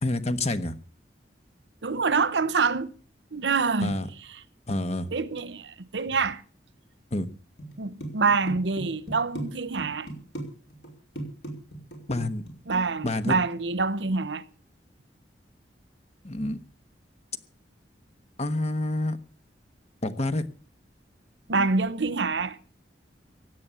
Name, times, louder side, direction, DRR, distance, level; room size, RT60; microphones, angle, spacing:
voice 1, 0.0-0.8 3.8-4.1 4.7-5.1 7.1-7.3 12.1-12.4 13.0-13.4 16.2-16.6 18.4-19.2 20.0-20.4, left 2 dB, 40° left, 1.2 m, -28 dB
voice 2, 1.8-3.0 3.3-4.0 5.1-6.4 7.8-10.1 12.7-14.4 21.5-22.6, right 4 dB, 90° right, 0.9 m, -26 dB
sound 1, 7.6-9.5 9.8-10.5 10.7-10.9 11.2-12.5, right 1 dB, 75° left, 5.1 m, -35 dB
16.5 x 9.8 x 6.9 m
head